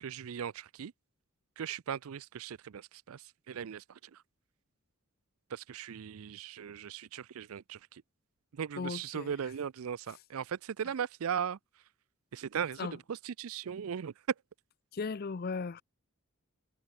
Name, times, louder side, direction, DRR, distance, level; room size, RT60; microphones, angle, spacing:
voice 1, 0.0-0.9 1.6-4.2 5.5-8.0 8.5-11.6 12.3-14.1, right 8 dB, 75° right, 0.4 m, -38 dB
voice 2, 8.8-9.3 12.8-13.0 14.9-15.8, left 4 dB, 45° left, 0.5 m, -36 dB
head